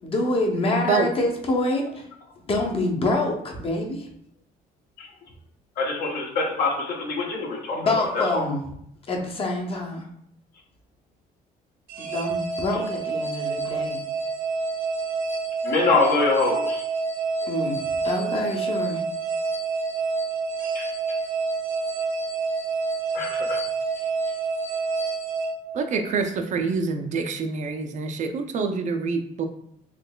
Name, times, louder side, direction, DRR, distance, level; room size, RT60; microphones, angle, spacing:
voice 1, 0.0-2.1 2.5-4.1 7.7-8.6 9.1-10.1 12.0-14.0 17.4-17.8 18.0-19.0, left 2 dB, 35° left, 1 dB, 0.7 m, -26 dB
voice 2, 0.6-1.1 25.7-29.5, right 5 dB, 45° right, 5 dB, 0.4 m, -26 dB
voice 3, 5.8-8.4 15.6-16.8 20.7-20.9 23.1-23.6, left 3 dB, 65° left, -1 dB, 1.0 m, -24 dB
sound 1, 11.9-26.3, right 4 dB, 85° right, 0.9 m, -28 dB
3.7 x 2.9 x 2.2 m, 0.71 s
cardioid pair, 110°, 17 cm